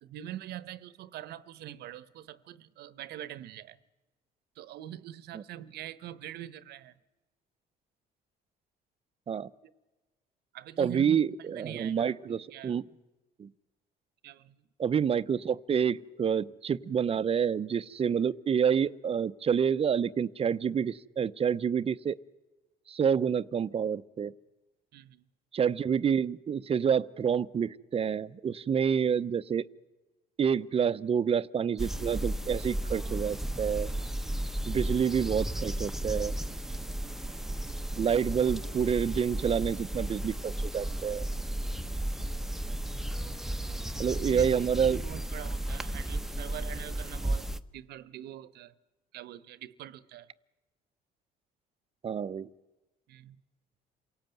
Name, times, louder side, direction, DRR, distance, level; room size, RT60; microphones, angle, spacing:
voice 1, 0.0-3.8 4.6-6.9 9.6-9.7 10.5-12.8 14.2-14.6 24.9-25.2 36.7-37.0 44.1-47.5 47.7-48.7 49.1-50.3 53.1-53.4, right 12 dB, 75° right, 1.0 m, -44 dB
voice 2, 10.8-12.8 13.4-13.5 14.8-22.2 22.9-24.3 25.5-29.6 30.4-33.9 34.7-36.3 38.0-41.3 44.0-45.0 52.0-52.5, right 7 dB, 35° right, 0.7 m, -28 dB
sound 1, 31.8-47.6, right 1 dB, ahead, 0.9 m, -34 dB
28.0 x 18.0 x 9.2 m
cardioid pair, 110°, 17 cm